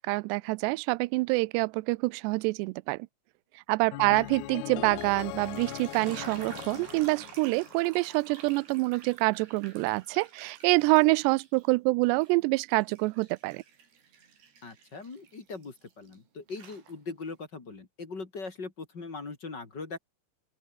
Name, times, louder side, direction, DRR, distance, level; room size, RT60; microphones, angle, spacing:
voice 1, 0.1-3.0 3.7-13.6, right 24 dB, 85° right, 2.5 m, -26 dB
sound 1, 3.9-8.0, left 19 dB, 85° left, 2.2 m, -40 dB
voice 2, 4.0-4.3 14.6-20.0, left 4 dB, 30° left, 2.7 m, -40 dB
sound 2, 5.2-11.7 12.0-16.2 16.5-17.3, right 7 dB, 65° right, 6.2 m, -50 dB
open air
omnidirectional pair, 5.3 m